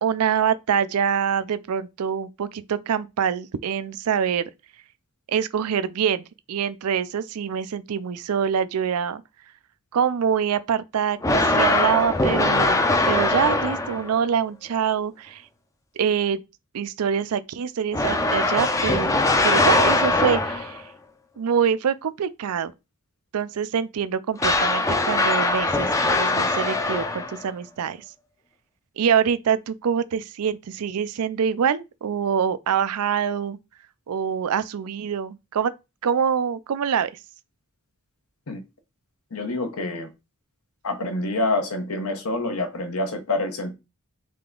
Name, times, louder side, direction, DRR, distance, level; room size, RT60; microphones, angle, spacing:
voice 1, 0.0-4.5 5.3-9.2 9.9-15.4 16.0-16.4 16.7-20.8 21.4-22.7 23.3-28.0 29.0-33.6 34.1-35.7 36.0-37.1, right 7 dB, 85° right, 0.4 m, -25 dB
sound 1, 11.2-14.2 17.9-20.8 24.4-27.5, left 2 dB, 15° left, 0.4 m, -21 dB
voice 2, 39.3-40.1 40.8-43.7, left 2 dB, 75° left, 0.9 m, -27 dB
3.7 x 3.4 x 3.7 m
head